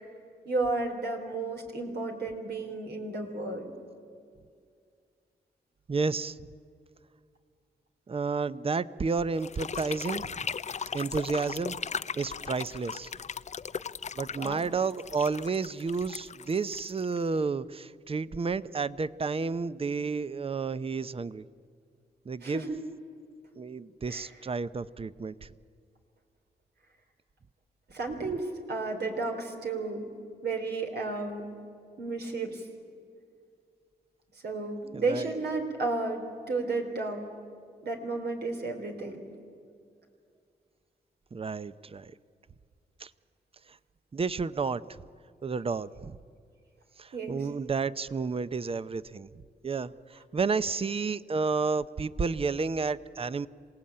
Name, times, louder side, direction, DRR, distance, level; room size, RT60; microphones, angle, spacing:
voice 1, 0.5-3.7 14.3-14.7 22.4-22.8 24.1-24.3 27.9-30.1 30.4-31.6 32.0-32.7 34.4-37.3 37.8-39.3 47.1-47.5, right 3 dB, 75° right, 3 dB, 3.8 m, -33 dB
voice 2, 5.9-6.4 8.1-10.5 10.9-11.8 12.2-13.1 14.2-21.4 22.3-22.7 23.6-25.5 34.9-35.3 41.3-42.1 43.0-43.1 44.1-45.0 45.4-46.2 47.0-49.3 49.6-53.5, right 4 dB, 35° right, 16 dB, 0.7 m, -31 dB
sound 1, 9.4-17.4, left 6 dB, 45° left, 0.6 m, -38 dB
27.5 x 18.0 x 8.8 m, 2.3 s
cardioid pair, 80°, 17 cm